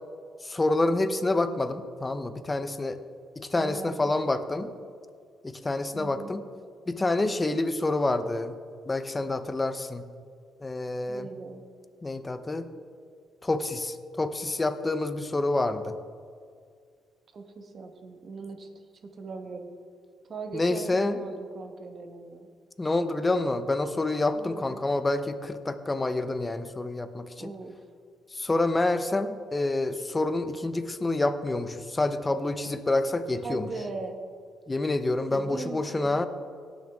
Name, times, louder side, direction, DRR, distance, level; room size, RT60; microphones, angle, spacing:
voice 1, 0.4-3.0 3.4-4.7 5.4-6.4 6.9-8.5 8.9-10.0 10.6-11.3 12.0-12.7 13.4-16.0 20.5-21.2 22.8-27.5 28.3-33.7 34.7-36.3, left 2 dB, 20° left, 10 dB, 0.7 m, -28 dB
voice 2, 3.5-3.9 4.2-4.3 5.9-6.4 11.1-11.6 17.3-18.7 19.0-19.7 20.3-22.5 24.3-24.9 27.4-27.8 33.4-34.2 35.3-36.2, right 3 dB, 50° right, 6 dB, 1.2 m, -39 dB
17.5 x 6.4 x 3.6 m, 2.1 s
cardioid pair, 90°, 0 cm